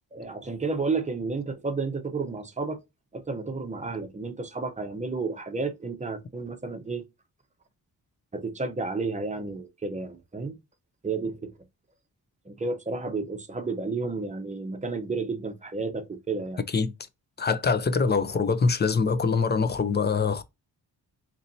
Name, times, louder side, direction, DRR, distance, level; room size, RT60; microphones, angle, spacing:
voice 1, 0.1-2.8 3.1-7.0 8.3-10.6 11.0-11.5 12.5-16.6, right 4 dB, 20° right, 0.7 m, -31 dB
voice 2, 17.4-20.4, left 5 dB, 30° left, 0.4 m, -24 dB
4.0 x 3.0 x 2.7 m
wide cardioid pair, 115°, 39 cm